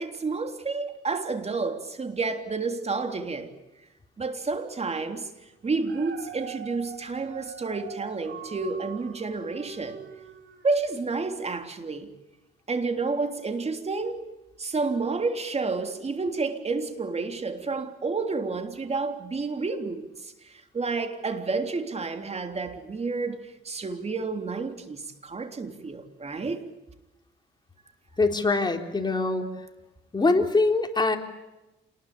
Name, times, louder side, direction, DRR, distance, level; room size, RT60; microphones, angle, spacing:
voice 1, 0.0-3.5 4.2-10.0 10.6-12.1 12.7-14.3 14.6-26.7, right 4 dB, 30° right, 3.4 m, -30 dB
Dog, 5.6-11.0 11.5-11.6, right 8 dB, 70° right, 6.6 m, -43 dB
voice 2, 28.2-29.5 30.1-31.2, left 3 dB, 20° left, 3.8 m, -23 dB
27.5 x 20.5 x 8.8 m
cardioid pair, 90°, 20 cm